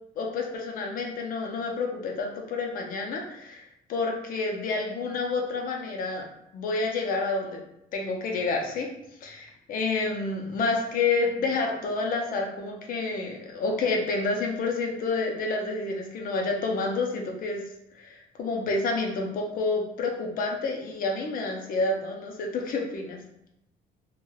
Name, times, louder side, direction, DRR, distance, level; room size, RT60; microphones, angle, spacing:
voice 1, 0.2-3.6 3.9-6.2 6.5-7.6 7.9-8.9 9.2-17.6 17.9-23.2, left 3 dB, 55° left, 1 dB, 0.6 m, -29 dB
3.1 x 2.3 x 2.3 m, 0.81 s
cardioid pair, 110°, 17 cm